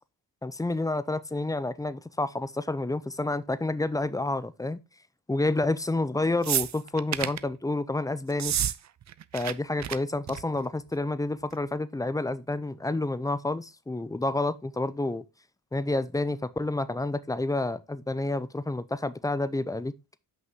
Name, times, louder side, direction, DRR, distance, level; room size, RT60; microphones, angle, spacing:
voice 1, 0.4-4.8 5.3-8.5 9.3-15.2 15.7-19.9, left 2 dB, 10° left, 0.6 m, -29 dB
sound 1, 6.4-7.4 8.3-8.8 9.0-9.5 9.8-10.0 10.3-10.6 11.5-11.6, right 10 dB, 40° right, 0.5 m, -29 dB
5.6 x 5.5 x 3.6 m
supercardioid pair, 50°, 46 cm